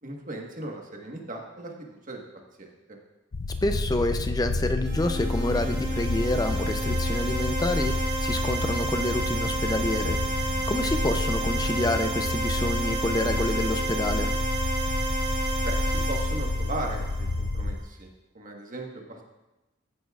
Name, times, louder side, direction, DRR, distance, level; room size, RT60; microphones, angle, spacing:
voice 1, 0.0-2.2 2.6-2.7 15.6-18.1 18.3-19.2, right 2 dB, 40° right, 1 dB, 1.5 m, -37 dB
sound 1, 3.3-17.8, left 2 dB, 65° left, 0.6 m, -29 dB
voice 2, 3.6-14.3, left 1 dB, 20° left, 7 dB, 0.6 m, -28 dB
sound 2, 4.8-17.6, right 3 dB, 20° right, 3.3 m, -32 dB
15.5 x 9.3 x 2.5 m, 1.0 s
head